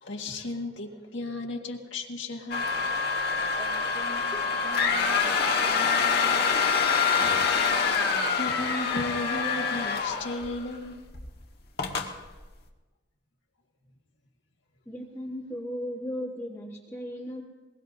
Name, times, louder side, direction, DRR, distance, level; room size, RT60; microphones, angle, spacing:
voice 1, 0.0-2.7 7.1-7.7 8.0-11.1, left 2 dB, 70° left, 1 dB, 1.8 m, -35 dB
sound 1, 2.5-10.8 11.1-11.3 11.8-12.1, left 5 dB, 50° left, 1.5 m, -26 dB
voice 2, 3.6-6.1, equal, 30° right, -3 dB, 2.3 m, -45 dB
voice 3, 14.9-17.4, equal, 10° left, -3 dB, 1.3 m, -36 dB
22.5 x 21.5 x 2.7 m, 1.2 s
head